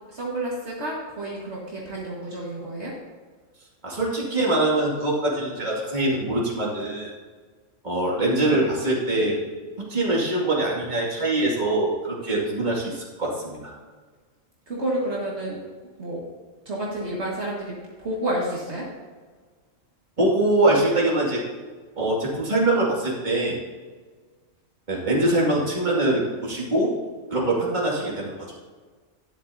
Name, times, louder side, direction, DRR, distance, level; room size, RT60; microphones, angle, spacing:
voice 1, 0.1-2.9 14.7-15.6 16.0-16.2 16.7-18.9, right 1 dB, 60° right, -5 dB, 2.0 m, -30 dB
voice 2, 3.8-7.1 7.8-9.4 9.9-13.7 20.2-21.4 22.0-23.6 24.9-26.9 27.3-28.3, right 2 dB, 35° right, -4 dB, 2.4 m, -23 dB
12.0 x 10.0 x 2.8 m, 1.5 s
omnidirectional pair, 1.3 m